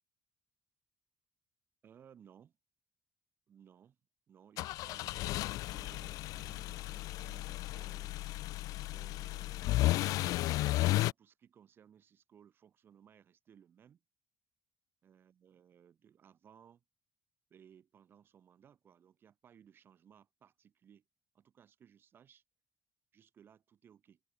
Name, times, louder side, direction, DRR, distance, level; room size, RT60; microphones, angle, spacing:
voice 1, 1.8-2.5 3.5-4.0 4.3-8.2 8.9-14.0 15.0-16.8 17.5-21.0 21.3-22.4 23.1-24.2, right 8 dB, 40° right, 2.0 m, -61 dB
sound 1, 4.6-11.1, left 17 dB, 80° left, 0.4 m, -34 dB
open air
cardioid pair, 170°, 6 cm